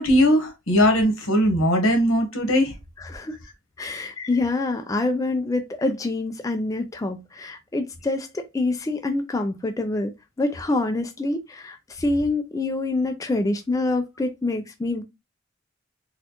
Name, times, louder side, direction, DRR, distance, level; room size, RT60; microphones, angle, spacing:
voice 1, 0.0-2.7 4.2-4.3, equal, 85° left, 1.2 m, -19 dB
voice 2, 3.0-3.3 3.8-10.1 10.4-15.0, left 2 dB, 15° left, 0.3 m, -26 dB
4.2 x 2.3 x 2.9 m
head